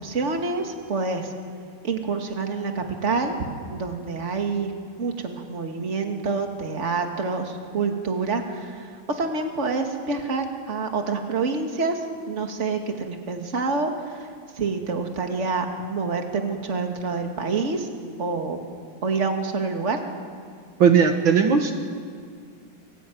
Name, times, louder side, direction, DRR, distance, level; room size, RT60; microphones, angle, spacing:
voice 1, 0.0-1.3 1.8-3.4 3.7-4.7 5.0-12.0 12.3-14.3 14.6-17.9 18.2-18.6 19.0-20.0, right 4 dB, 35° right, 4 dB, 2.3 m, -27 dB
voice 2, 20.8-21.7, right 6 dB, 70° right, 5 dB, 2.2 m, -17 dB
28.0 x 19.0 x 9.4 m, 2.2 s
omnidirectional pair, 2.3 m